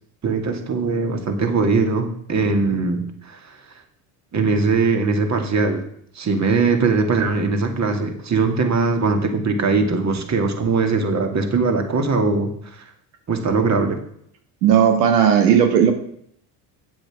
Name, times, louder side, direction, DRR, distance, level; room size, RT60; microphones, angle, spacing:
voice 1, 0.2-3.6 4.3-5.8 6.1-12.8 13.3-14.0, right 4 dB, 35° right, 5 dB, 2.4 m, -21 dB
voice 2, 14.6-15.9, right 8 dB, 85° right, 6 dB, 1.4 m, -15 dB
9.0 x 7.7 x 6.2 m, 0.68 s
hypercardioid pair, 80°, 48 cm